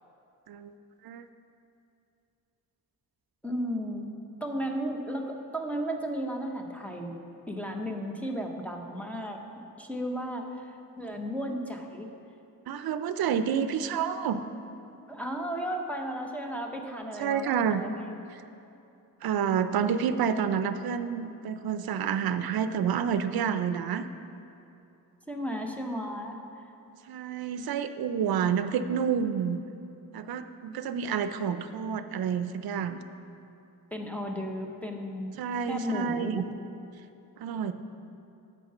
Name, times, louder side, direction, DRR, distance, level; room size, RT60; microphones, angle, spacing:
voice 1, 3.4-4.1 4.4-7.2 7.5-9.4 9.8-12.1 15.1-17.9 25.3-26.4 33.9-35.4 35.7-36.4, equal, 5° left, 2 dB, 0.7 m, -34 dB
voice 2, 12.7-14.4 17.2-17.8 18.3-18.4 19.2-24.1 27.1-29.6 30.1-33.0 35.4-36.4 37.4-37.7, right 7 dB, 90° right, 11 dB, 0.5 m, -29 dB
8.8 x 5.7 x 6.6 m, 2.7 s
wide cardioid pair, 130°, 35 cm